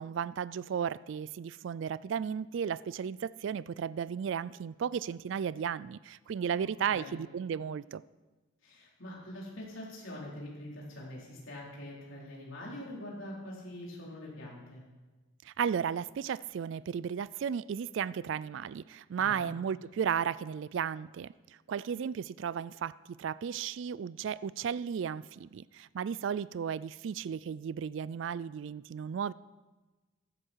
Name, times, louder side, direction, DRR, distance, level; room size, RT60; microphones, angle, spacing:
voice 1, 0.0-8.0 15.4-21.3 21.7-29.3, right 7 dB, 65° right, 0.3 m, -34 dB
voice 2, 8.6-14.8 19.2-19.5, left 1 dB, 70° left, 4.5 m, -44 dB
14.5 x 11.5 x 4.7 m
head